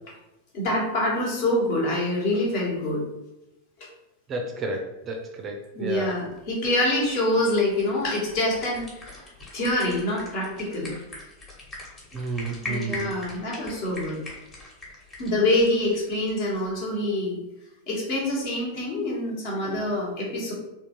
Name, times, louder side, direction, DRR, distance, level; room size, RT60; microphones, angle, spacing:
voice 1, 0.5-3.0 3.8-3.9 5.7-11.0 12.6-14.2 15.2-17.4 17.9-20.5, left 1 dB, 50° left, -3 dB, 1.2 m, -26 dB
voice 2, 4.3-6.2 12.1-13.1, right 2 dB, 25° right, 3 dB, 0.5 m, -32 dB
sound 1, 5.9-16.7, left 2 dB, 25° left, 1.2 m, -42 dB
3.6 x 2.4 x 3.0 m, 0.96 s
figure-of-eight pair, 90°, 0 cm